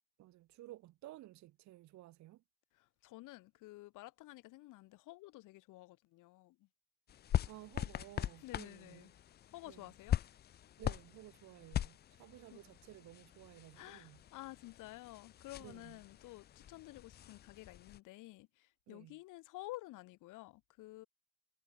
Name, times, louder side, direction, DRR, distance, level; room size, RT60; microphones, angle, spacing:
voice 1, 0.2-2.4 7.5-9.1 9.7-9.9 10.8-14.2 15.6-16.0 18.9-19.2, right 16 dB, 50° right, 1.4 m, -55 dB
voice 2, 2.8-6.7 8.4-9.1 9.5-10.2 12.5-12.6 13.7-21.1, left 19 dB, 60° left, 1.1 m, -52 dB
sound 1, 7.1-18.0, left 11 dB, 30° left, 0.5 m, -42 dB
cardioid pair, 180°, 35 cm